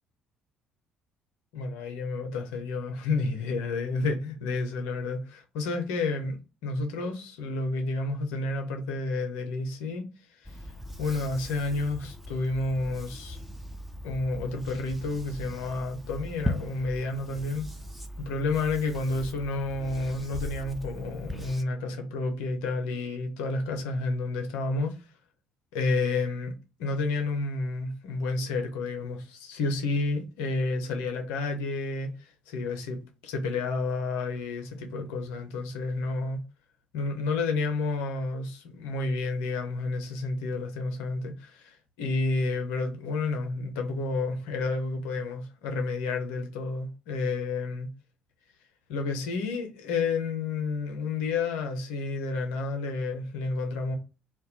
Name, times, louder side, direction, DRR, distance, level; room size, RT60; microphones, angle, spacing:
voice 1, 1.5-10.1 10.4-10.6 11.0-13.4 14.0-17.7 18.2-25.1 25.7-26.5 26.8-36.4 36.9-47.9 48.9-54.0, left 3 dB, 70° left, 0.6 m, -30 dB
sound 1, 10.4-21.6, equal, 5° right, 0.4 m, -39 dB
2.1 x 2.1 x 2.8 m
hypercardioid pair, 50°, 3 cm